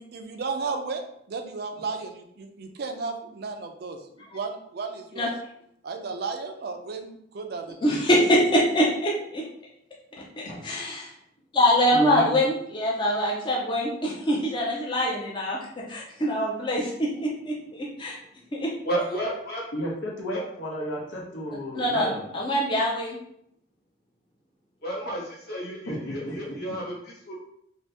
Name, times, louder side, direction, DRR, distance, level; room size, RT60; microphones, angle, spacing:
voice 1, 0.0-5.3 5.8-8.3, right 4 dB, 55° right, 5 dB, 0.4 m, -34 dB
voice 2, 7.8-9.4 10.4-11.1 11.5-15.6 15.9-18.2 18.5-18.7 21.8-22.1 22.3-23.2, equal, 25° left, -3 dB, 0.5 m, -24 dB
voice 3, 11.9-12.4 19.7-22.3 25.9-26.7, equal, 80° left, -2 dB, 0.9 m, -33 dB
voice 4, 18.8-19.9 20.3-20.4 24.8-27.4, right 1 dB, 55° left, -4 dB, 1.2 m, -32 dB
2.7 x 2.6 x 3.3 m, 0.72 s
head